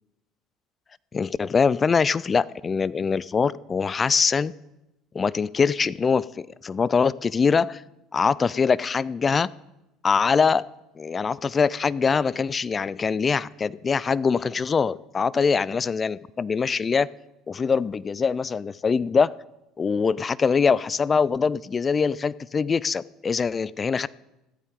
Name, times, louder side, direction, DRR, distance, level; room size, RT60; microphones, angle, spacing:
voice 1, 1.1-4.5 5.1-7.8 8.1-9.5 10.0-10.6 11.0-17.1 17.5-19.3 19.8-24.1, left 5 dB, 30° left, 21 dB, 0.3 m, -23 dB
14.5 x 12.5 x 3.8 m, 0.93 s
hypercardioid pair, 70°, 0 cm